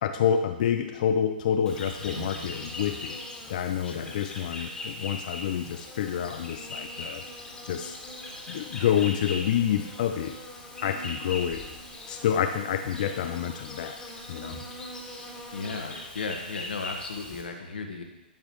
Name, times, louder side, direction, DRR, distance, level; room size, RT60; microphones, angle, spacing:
voice 1, 0.0-3.2 3.5-7.2 7.6-8.0 8.5-10.3 10.8-11.6 12.1-14.0 14.3-14.6, left 9 dB, 50° left, 7 dB, 0.5 m, -28 dB
Insect, 1.6-17.4, left 1 dB, 10° left, 1.9 m, -40 dB
voice 2, 15.2-18.0, left 4 dB, 70° left, 3 dB, 1.5 m, -36 dB
12.5 x 8.6 x 3.1 m, 0.99 s
figure-of-eight pair, 120°, 5 cm